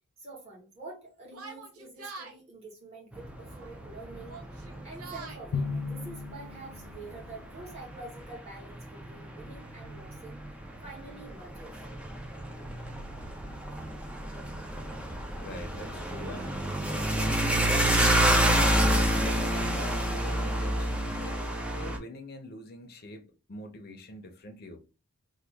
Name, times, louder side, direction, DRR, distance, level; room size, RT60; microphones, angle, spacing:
voice 1, 0.2-4.4 4.8-10.4 10.8-11.8, right 2 dB, 30° right, 1.5 m, -47 dB
Yell, 1.3-2.4 3.4-3.8 4.2-5.4, right 4 dB, 70° right, 0.8 m, -45 dB
sound 1, 3.1-22.0, right 1 dB, 5° right, 0.4 m, -29 dB
Drum, 5.5-7.3, left 5 dB, 85° left, 0.5 m, -35 dB
voice 2, 15.4-16.6 18.4-24.8, left 1 dB, 45° left, 0.6 m, -43 dB
2.9 x 2.3 x 3.4 m
head